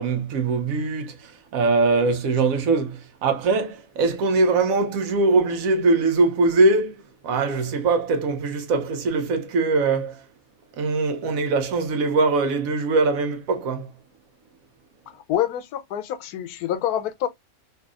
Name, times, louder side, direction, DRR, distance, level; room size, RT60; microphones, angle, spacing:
voice 1, 0.0-7.0 7.2-10.2 10.8-13.9, right 3 dB, 70° right, 1.0 m, -22 dB
voice 2, 15.1-17.3, left 11 dB, 90° left, 1.1 m, -26 dB
3.3 x 2.6 x 2.3 m
omnidirectional pair, 1.6 m